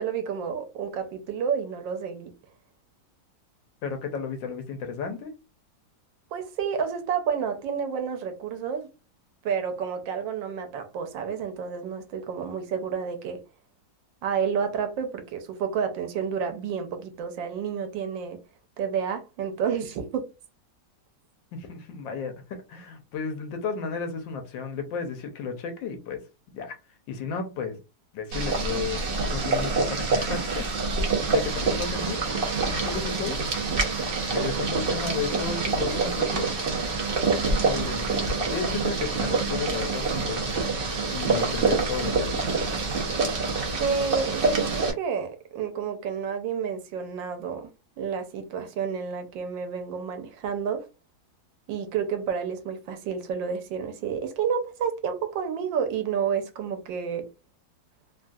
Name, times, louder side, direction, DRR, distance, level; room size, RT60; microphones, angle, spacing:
voice 1, 0.0-2.3 6.3-8.9 9.4-13.4 14.2-18.4 18.8-20.3 43.8-47.7 48.0-50.9 51.7-57.3, right 7 dB, 85° right, 1.4 m, -30 dB
voice 2, 3.8-5.3 21.5-26.2 26.5-26.8 27.1-27.8 28.1-29.0 29.3-30.7 31.0-32.3 32.8-33.4 34.3-36.5 37.4-40.5 41.1-42.4, left 5 dB, 80° left, 1.4 m, -33 dB
Boiling, 28.3-44.9, right 3 dB, 70° right, 0.5 m, -26 dB
3.4 x 2.3 x 2.5 m
omnidirectional pair, 2.0 m